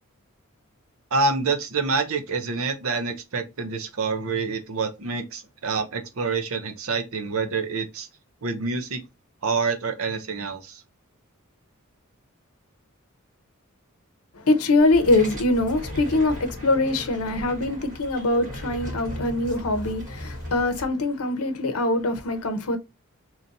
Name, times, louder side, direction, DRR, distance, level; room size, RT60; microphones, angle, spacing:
voice 1, 1.1-8.1 8.4-9.0 9.4-10.8, right 4 dB, 75° right, 0.8 m, -27 dB
voice 2, 14.3-22.8, left 2 dB, 90° left, 0.7 m, -23 dB
sound 1, 14.8-20.8, equal, 40° right, 1.6 m, -37 dB
3.0 x 2.7 x 3.9 m
head